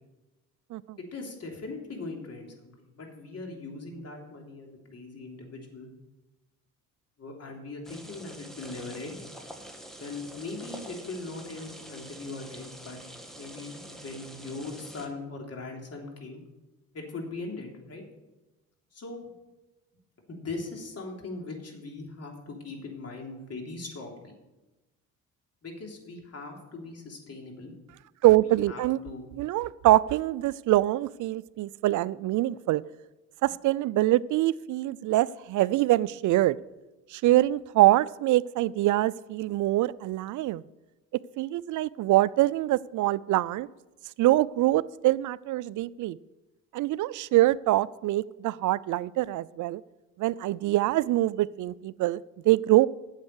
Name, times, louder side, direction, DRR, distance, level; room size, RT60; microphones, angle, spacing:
voice 1, 1.1-5.9 7.2-9.2 10.0-13.0 13.4-16.4 16.9-18.0 18.9-19.2 20.3-24.3 25.6-27.7 28.4-29.2, left 3 dB, 45° left, 1 dB, 3.3 m, -40 dB
sound 1, 7.8-15.1, right 1 dB, ahead, 2.0 m, -46 dB
voice 2, 28.2-29.0 29.4-32.8 33.4-36.6 37.1-40.6 41.4-43.7 44.2-46.2 46.7-49.8 50.2-52.9, right 16 dB, 55° right, 20 dB, 0.5 m, -24 dB
9.5 x 7.4 x 8.0 m, 1.1 s
supercardioid pair, 70°, 36 cm